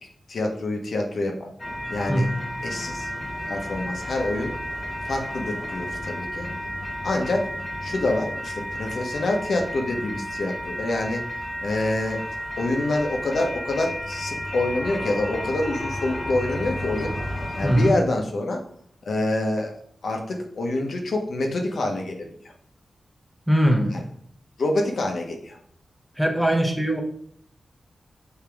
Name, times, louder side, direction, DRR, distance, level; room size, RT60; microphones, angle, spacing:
voice 1, 0.3-1.5 1.9-2.3 2.6-3.1 3.5-4.5 5.0-6.5 7.0-7.5 7.8-11.2 11.6-12.2 12.6-17.1 17.6-18.6 19.0-19.8 20.0-22.3 23.9-24.0 24.6-25.6, left 2 dB, 70° left, 2 dB, 1.1 m, -26 dB
sound 1, 1.6-17.9, equal, 20° left, 1.2 m, -32 dB
voice 2, 17.6-18.0 23.5-24.0 26.2-27.0, equal, 5° right, 2 dB, 0.9 m, -21 dB
6.9 x 4.5 x 3.5 m, 0.64 s
wide cardioid pair, 130°, 0 cm